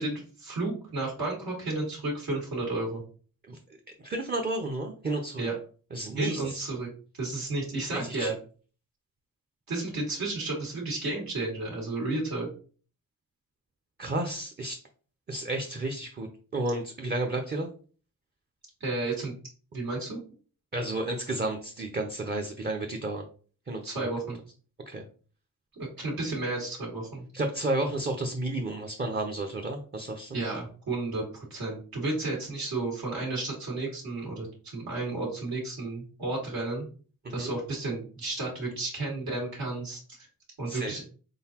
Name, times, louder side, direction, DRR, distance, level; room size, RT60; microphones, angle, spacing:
voice 1, 0.0-3.0 5.4-5.6 6.2-6.9 7.2-8.3 9.7-12.5 18.8-19.3 19.7-20.2 23.8-24.4 25.8-27.3 30.3-34.5 34.7-36.9 37.3-40.0 40.6-41.0, right 2 dB, 80° right, -3 dB, 1.9 m, -32 dB
voice 2, 4.0-5.5 5.9-6.6 7.9-8.3 14.0-14.8 15.3-16.3 16.5-17.7 20.7-23.3 23.7-24.1 24.9-25.0 27.3-30.4 37.4-37.5 40.7-41.0, right 2 dB, 30° right, 3 dB, 0.6 m, -32 dB
3.9 x 3.9 x 2.8 m, 0.40 s
wide cardioid pair, 105°, 35 cm